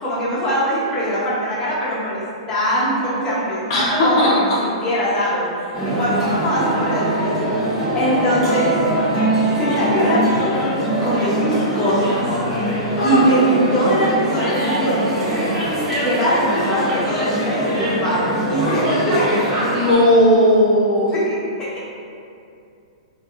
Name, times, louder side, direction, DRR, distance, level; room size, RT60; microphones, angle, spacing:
voice 1, 0.0-2.2 2.5-7.5 7.9-8.7 9.6-10.7 11.0-12.3 12.6-15.6 16.0-19.4 21.1-21.9, right 1 dB, 20° left, -9 dB, 0.8 m, -22 dB
voice 2, 3.7-4.6 13.0-13.2 19.7-21.1, left 1 dB, 55° left, -7 dB, 0.5 m, -16 dB
sound 1, 5.7-19.9, right 1 dB, 10° right, 1.0 m, -22 dB
2.5 x 2.3 x 2.4 m, 2.5 s
hypercardioid pair, 120°, 3 cm